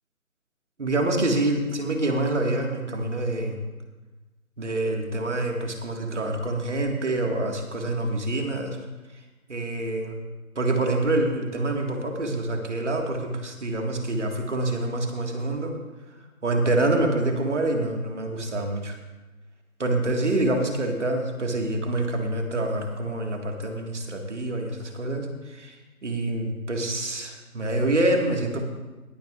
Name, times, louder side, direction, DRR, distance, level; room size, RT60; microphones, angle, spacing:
voice 1, 0.8-3.6 4.6-8.8 9.5-10.2 10.6-15.8 16.4-19.0 19.8-25.8 26.0-28.6, right 2 dB, 50° right, 2 dB, 1.9 m, -26 dB
21.0 x 9.0 x 2.5 m, 1.2 s
figure-of-eight pair, 170°, 44 cm